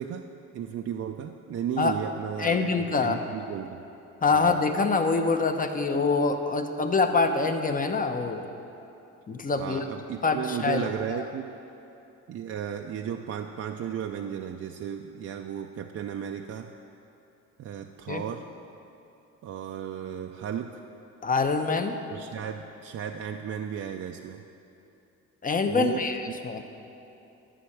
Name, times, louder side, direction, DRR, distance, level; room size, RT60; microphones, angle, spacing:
voice 1, 0.0-3.8 4.3-4.5 9.5-11.5 12.3-16.7 17.6-18.4 19.4-20.8 22.1-24.4 25.7-26.4, right 9 dB, 55° right, 4 dB, 0.5 m, -34 dB
voice 2, 2.4-3.2 4.2-8.4 9.3-9.8 10.2-11.2 18.1-18.2 21.2-22.0 25.4-26.2 26.4-26.6, left 4 dB, 30° left, 6 dB, 0.8 m, -25 dB
11.5 x 5.6 x 8.5 m, 2.9 s
cardioid pair, 90°, 30 cm